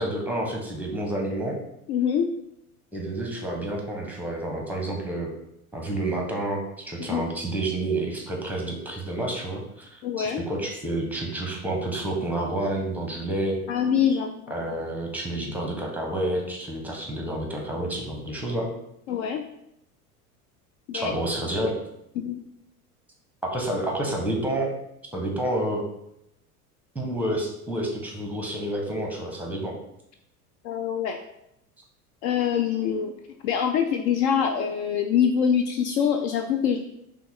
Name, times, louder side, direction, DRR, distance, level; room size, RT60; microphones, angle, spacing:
voice 1, 0.0-1.6 2.9-5.3 5.7-13.6 14.5-18.7 20.9-21.8 23.4-24.8 25.1-25.8 26.9-29.8, right 1 dB, 5° right, 0 dB, 1.0 m, -29 dB
voice 2, 1.9-2.3 7.1-7.3 10.0-10.4 13.7-14.6 19.1-19.4 20.9-21.2 22.2-22.4 30.6-31.2 32.2-33.1 33.4-36.8, left 8 dB, 50° left, 5 dB, 0.5 m, -24 dB
5.7 x 2.3 x 3.6 m, 0.80 s
figure-of-eight pair, 75°, 45 cm